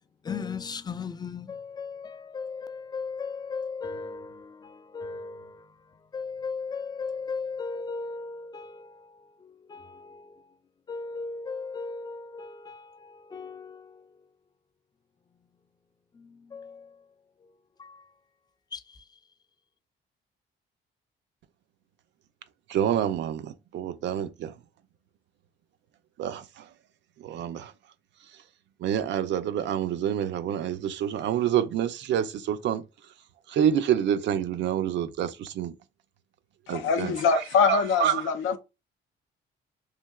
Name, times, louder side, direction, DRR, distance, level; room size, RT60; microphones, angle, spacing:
voice 1, 0.2-10.5 10.9-14.3 16.1-17.1 17.4-17.5 17.8-18.1 18.7-19.2, left 4 dB, 20° left, 0.3 m, -37 dB
voice 2, 22.7-24.5 26.2-26.7 27.2-27.7 28.8-32.8 33.5-35.8 36.7-37.4 37.7-38.3, right 10 dB, 65° right, 0.4 m, -27 dB
voice 3, 36.7-38.6, left 6 dB, 85° left, 0.6 m, -24 dB
3.2 x 2.7 x 2.3 m
cardioid pair, 90°, 20 cm